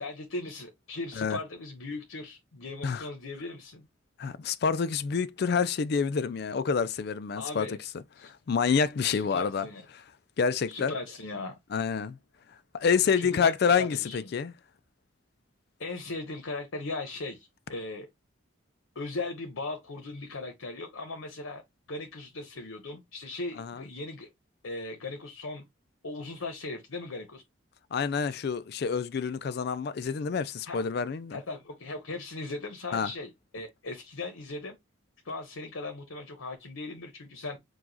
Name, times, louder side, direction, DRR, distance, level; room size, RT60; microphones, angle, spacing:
voice 1, 0.0-3.9 7.4-7.8 8.1-8.3 9.1-9.9 10.7-11.6 13.2-14.3 15.8-18.1 18.9-21.6 21.9-24.3 24.6-25.6 26.0-27.4 30.7-30.9 31.3-34.8 35.2-37.6, left 2 dB, 85° left, 0.9 m, -38 dB
voice 2, 4.2-9.7 9.9-10.0 10.4-10.9 11.7-12.2 12.7-14.5 23.6-23.8 27.9-31.4 32.9-33.1, left 6 dB, 50° left, 0.3 m, -28 dB
4.7 x 2.3 x 3.9 m
head